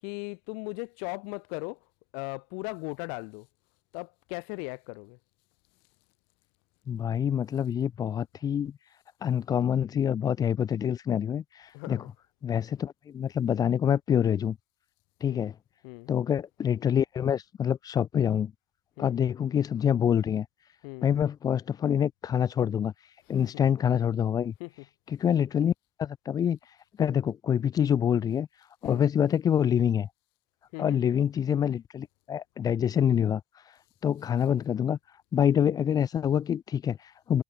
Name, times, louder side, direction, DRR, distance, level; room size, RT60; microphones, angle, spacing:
voice 1, 0.0-1.8 2.1-3.5 3.9-5.2 11.7-12.1 15.2-15.5 15.8-16.1 19.0-19.2 20.8-21.1 24.6-24.7 28.8-29.0 30.7-31.1, left 40 dB or more, 85° left, 6.3 m, -38 dB
voice 2, 6.9-8.8 9.2-12.0 12.4-14.6 15.2-15.5 16.1-18.5 19.0-20.5 21.0-22.9 23.3-24.5 25.1-25.7 26.0-26.6 27.0-28.5 28.8-30.1 30.8-33.4 34.0-35.0 35.3-37.4, left 9 dB, 25° left, 0.9 m, -26 dB
cardioid pair, 170°, 14 cm